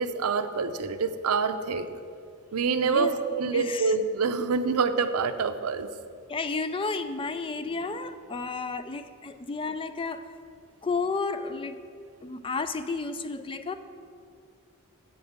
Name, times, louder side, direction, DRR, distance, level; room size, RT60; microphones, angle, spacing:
voice 1, 0.0-1.9 2.5-5.9, right 5 dB, 75° right, 10 dB, 0.6 m, -26 dB
voice 2, 2.8-3.2 3.5-3.9 6.3-10.2 10.8-11.8 12.2-13.7, left 4 dB, 25° left, 11 dB, 0.3 m, -32 dB
8.2 x 7.1 x 7.3 m, 2.3 s
head